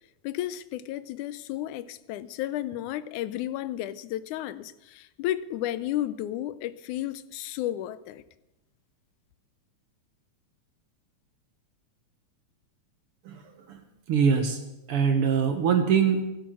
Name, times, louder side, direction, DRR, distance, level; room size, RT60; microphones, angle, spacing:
voice 1, 0.2-8.2, left 13 dB, 85° left, 2.2 m, -33 dB
voice 2, 13.3-14.6 14.9-16.3, right 6 dB, 60° right, 1.7 m, -24 dB
16.0 x 12.0 x 6.2 m
omnidirectional pair, 3.4 m